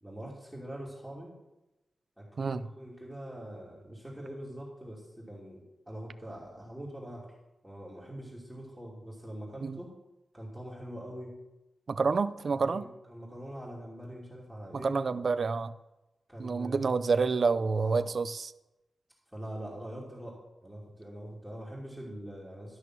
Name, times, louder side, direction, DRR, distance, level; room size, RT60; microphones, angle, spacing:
voice 1, 0.0-1.3 2.2-7.3 7.6-9.9 10.3-11.3 12.6-14.9 16.3-17.0 17.7-18.1 19.3-22.8, right 1 dB, 5° right, -5 dB, 2.8 m, -43 dB
voice 2, 2.4-2.7 9.6-9.8 11.9-12.9 14.7-15.7 16.4-18.5, right 4 dB, 60° right, 14 dB, 0.5 m, -28 dB
12.5 x 6.2 x 6.1 m, 0.98 s
wide cardioid pair, 90°, 0 cm